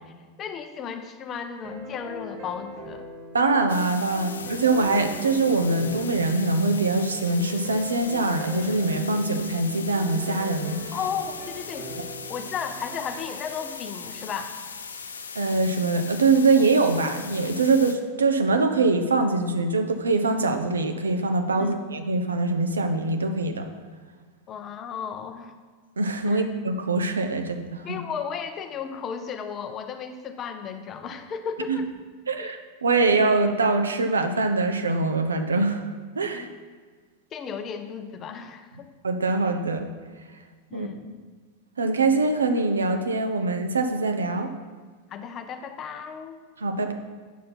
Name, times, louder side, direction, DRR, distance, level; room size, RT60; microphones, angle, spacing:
voice 1, 0.4-3.1 10.9-11.9 12.3-14.5 21.6-21.7 24.5-25.5 26.3-26.5 27.8-31.9 32.4-32.6 36.3-36.5 37.3-38.9 40.7-41.2 45.1-46.4, left 7 dB, 30° left, 8 dB, 0.7 m, -34 dB
sound 1, 1.6-13.6, right 1 dB, 40° right, 1.1 m, -41 dB
voice 2, 3.3-10.9 15.4-23.7 26.0-28.0 31.7-31.8 32.3-35.8 36.2-36.5 39.0-39.9 40.7-40.9 41.8-44.5 46.6-46.9, right 3 dB, 75° right, 6 dB, 0.7 m, -23 dB
sound 2, 3.7-17.9, left 5 dB, 70° left, 0.5 m, -39 dB
9.2 x 6.4 x 4.3 m, 1.5 s
figure-of-eight pair, 90°, 0 cm